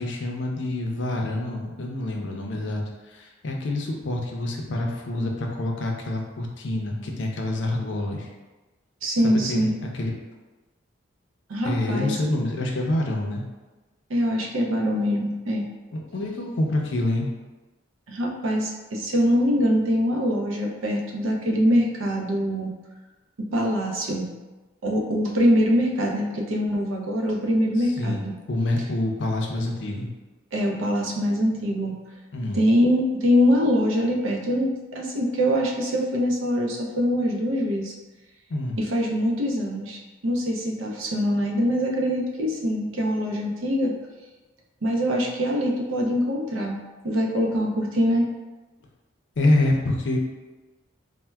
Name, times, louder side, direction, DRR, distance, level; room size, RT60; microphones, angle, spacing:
voice 1, 0.0-2.8 3.1-8.3 9.2-10.1 11.6-13.4 15.9-17.3 27.8-28.2 28.5-30.1 32.3-32.6 38.5-38.8 49.4-50.2, left 1 dB, 65° left, 1 dB, 0.5 m, -27 dB
voice 2, 9.0-9.7 11.5-12.2 14.1-15.7 18.1-22.7 23.4-24.3 24.8-28.3 30.5-32.0 32.5-37.9 38.8-43.9 44.8-46.8 47.0-48.3, equal, 80° right, 0 dB, 0.5 m, -23 dB
4.2 x 2.1 x 2.2 m, 1.2 s
head